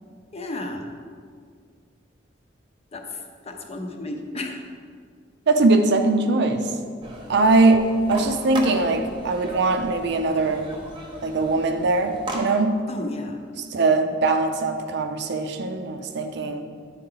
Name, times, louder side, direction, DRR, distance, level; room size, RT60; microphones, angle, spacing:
voice 1, 0.3-0.9 2.9-4.6 12.9-13.4, left 2 dB, 35° left, 3 dB, 0.7 m, -33 dB
voice 2, 5.5-6.7 7.3-10.7 11.2-12.8 13.7-16.7, right 3 dB, 65° right, 6 dB, 0.5 m, -21 dB
sound 1, 7.0-12.4, right 1 dB, 25° right, 0.9 m, -37 dB
10.0 x 4.5 x 3.9 m, 2.1 s
head